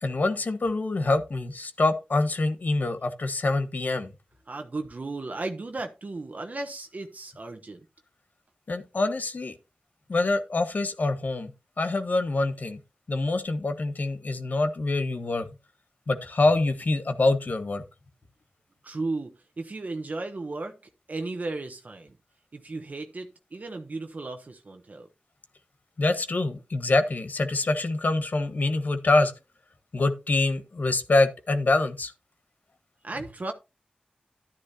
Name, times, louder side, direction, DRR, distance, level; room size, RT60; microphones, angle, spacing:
voice 1, 0.0-4.1 8.7-9.6 10.1-11.5 11.8-12.8 13.1-15.5 16.1-17.8 26.0-29.3 29.9-32.1, left 2 dB, 65° left, 1.3 m, -25 dB
voice 2, 4.5-7.8 18.8-20.7 21.1-22.1 22.5-25.1 33.0-33.5, right 3 dB, 60° right, 1.0 m, -35 dB
11.5 x 9.8 x 2.8 m
cardioid pair, 45°, 3 cm